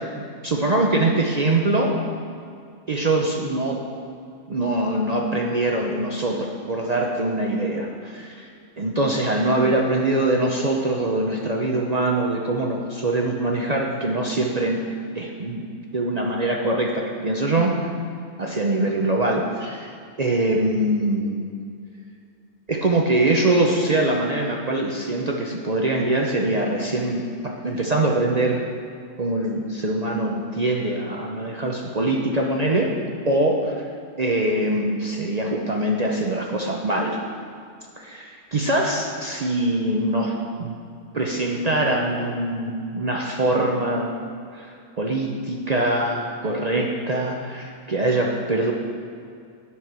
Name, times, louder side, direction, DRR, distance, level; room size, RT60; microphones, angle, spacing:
voice 1, 0.0-2.0 2.9-3.8 4.5-8.5 8.8-14.8 15.1-15.6 15.9-17.9 18.4-21.5 22.7-28.6 29.2-32.9 33.2-33.7 34.2-37.2 38.0-40.8 41.1-44.2 44.5-48.7, right 2 dB, 40° right, 0 dB, 0.7 m, -23 dB
10.5 x 4.7 x 6.1 m, 2.4 s
omnidirectional pair, 1.3 m